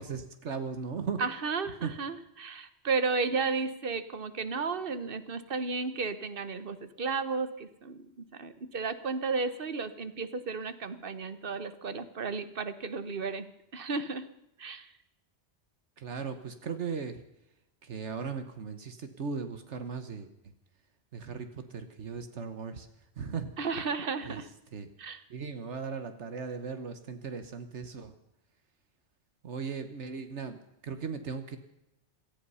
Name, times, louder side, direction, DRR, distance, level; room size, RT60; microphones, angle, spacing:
voice 1, 0.0-1.2 1.8-1.9 16.0-17.2 17.8-20.3 21.1-22.9 23.2-23.5 24.2-24.4 24.7-24.9 25.3-28.1 29.4-31.6, right 5 dB, 80° right, 9 dB, 1.5 m, -37 dB
voice 2, 1.2-13.5 13.7-14.2 14.6-14.9 23.6-24.5 25.0-25.2, right 4 dB, 55° right, 12 dB, 1.3 m, -33 dB
18.0 x 14.0 x 5.6 m, 0.85 s
omnidirectional pair, 1.2 m